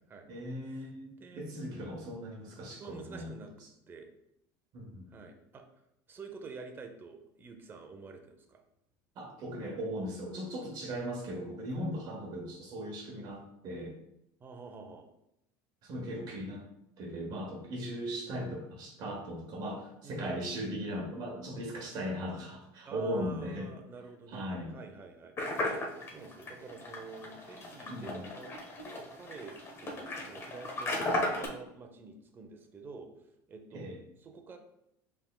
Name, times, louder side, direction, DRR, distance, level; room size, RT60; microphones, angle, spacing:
voice 1, 0.3-3.3 4.7-5.1 9.1-13.9 15.8-16.6 17.0-23.7 24.3-24.7 27.9-28.3 33.7-34.0, equal, 50° right, 0 dB, 1.0 m, -38 dB
voice 2, 2.8-4.1 5.1-5.6 6.1-8.6 11.8-11.9 14.4-15.1 20.0-20.2 22.9-25.8 26.1-28.5 28.8-31.0 31.4-33.9 34.2-34.6, right 4 dB, 25° right, 4 dB, 0.6 m, -48 dB
sound 1, 25.4-31.5, left 1 dB, 30° left, 0.9 m, -36 dB
5.6 x 3.5 x 2.3 m, 0.80 s
supercardioid pair, 130°, 9 cm